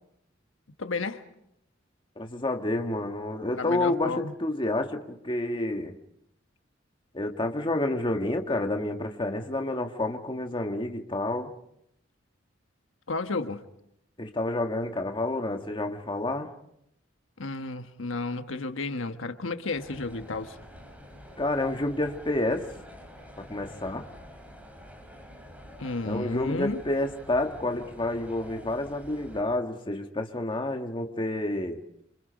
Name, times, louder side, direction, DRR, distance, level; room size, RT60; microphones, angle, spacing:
voice 1, 0.8-1.2 3.5-4.3 13.1-13.6 17.4-20.6 25.8-26.8, left 3 dB, 85° left, 8 dB, 1.3 m, -32 dB
voice 2, 2.2-6.0 7.1-11.5 14.2-16.5 21.4-22.7 23.4-24.1 26.0-32.0, left 2 dB, 25° left, 4 dB, 1.6 m, -29 dB
sound 1, 19.7-29.4, equal, 10° right, 4.6 m, -47 dB
27.0 x 26.0 x 5.2 m, 0.78 s
head